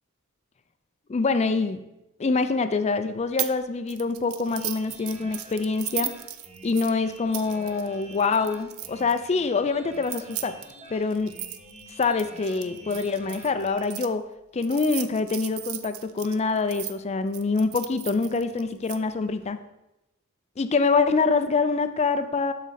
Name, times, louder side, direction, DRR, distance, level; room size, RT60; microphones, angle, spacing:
voice 1, 1.1-1.8 2.2-6.1 6.6-10.5 10.9-11.3 12.0-14.2 14.5-19.6 20.6-22.5, left 4 dB, 30° left, 10 dB, 0.4 m, -25 dB
sound 1, 3.4-3.6 3.9-9.2 9.9-14.1 14.6-16.9 17.3-19.0, right 13 dB, 80° right, 0.5 m, -36 dB
sound 2, 4.4-13.9, right 1 dB, 30° right, 1.1 m, -47 dB
12.0 x 4.2 x 4.2 m, 0.93 s
head